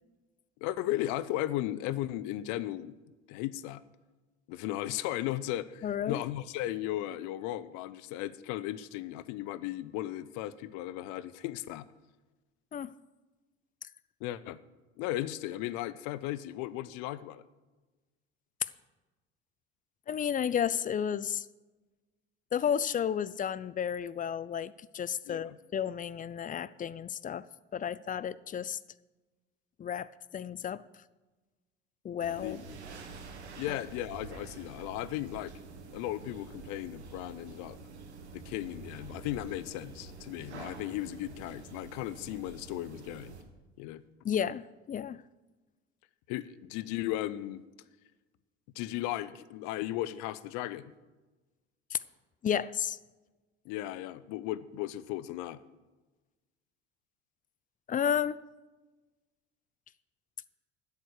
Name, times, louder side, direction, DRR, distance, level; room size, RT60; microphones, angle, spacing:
voice 1, 0.6-2.9 3.3-3.8 4.5-11.9 14.2-14.6 15.0-17.4 25.3-25.6 32.3-32.8 33.6-35.5 35.9-37.8 38.3-43.3 43.8-44.0 46.3-47.6 48.8-50.9 53.6-55.6, left 14 dB, 60° left, 17 dB, 0.7 m, -36 dB
voice 2, 5.8-6.2 12.7-12.9 20.1-21.5 22.5-27.5 27.7-28.8 29.8-30.8 32.0-32.6 33.7-33.8 44.2-45.2 51.9-52.0 52.4-53.0 57.9-58.4, left 8 dB, 25° left, 18 dB, 0.4 m, -32 dB
sound 1, 32.2-43.4, right 4 dB, 85° right, 1.4 m, -47 dB
10.5 x 8.0 x 6.5 m, 1.2 s
hypercardioid pair, 65°, 33 cm